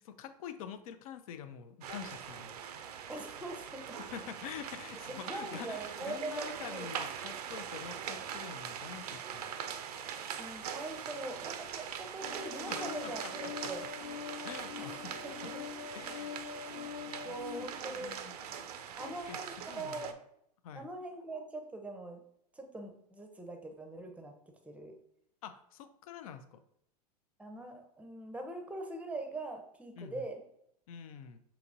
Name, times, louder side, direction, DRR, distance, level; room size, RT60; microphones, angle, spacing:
voice 1, 0.0-2.6 4.0-9.5 12.6-13.3 14.4-15.1 15.9-16.6 17.1-17.3 17.6-19.4 19.7-20.1 20.6-20.9 25.4-26.6 30.0-30.3 30.9-31.4, left 8 dB, 60° left, 12 dB, 0.4 m, -47 dB
sound 1, 1.8-20.1, right 8 dB, 70° right, 0.4 m, -42 dB
voice 2, 3.1-4.0 5.2-6.9 10.4-13.8 14.8-14.9 15.2-15.6 17.2-18.2 19.0-20.1 20.7-22.2 22.5-24.3 24.6-24.9 27.4-30.4, right 2 dB, 5° right, 4 dB, 0.6 m, -42 dB
sound 2, 12.2-17.6, left 9 dB, 40° left, 0.8 m, -44 dB
5.8 x 2.9 x 2.6 m, 0.74 s
hypercardioid pair, 95°, 20 cm